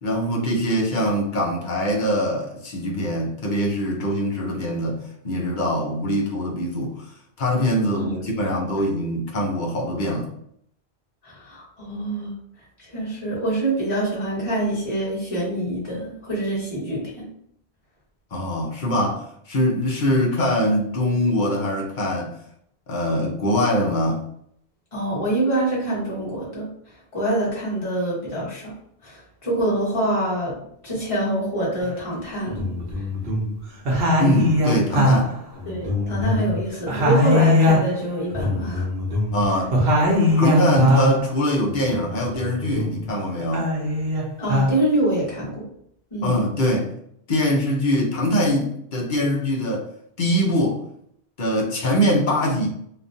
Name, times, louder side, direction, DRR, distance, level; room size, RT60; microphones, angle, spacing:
voice 1, 0.0-7.0 7.4-10.3 18.3-22.4 22.9-24.2 34.2-35.3 39.3-39.8 40.4-43.8 46.2-46.9 47.3-49.9 50.2-50.8 51.4-52.7, equal, 55° left, -1 dB, 0.8 m, -23 dB
voice 2, 11.2-12.3 12.8-17.3 24.9-26.7 27.1-28.7 29.0-32.7 33.0-33.1 35.7-38.9 44.4-45.6 46.1-46.4, right 1 dB, 30° left, -7 dB, 1.3 m, -25 dB
sound 1, 31.8-31.9 32.5-33.5 33.8-36.6 36.9-41.3 41.7-43.1 43.4-44.7, left 1 dB, 70° right, 1.0 m, -21 dB
3.1 x 2.2 x 2.6 m, 0.70 s
omnidirectional pair, 1.1 m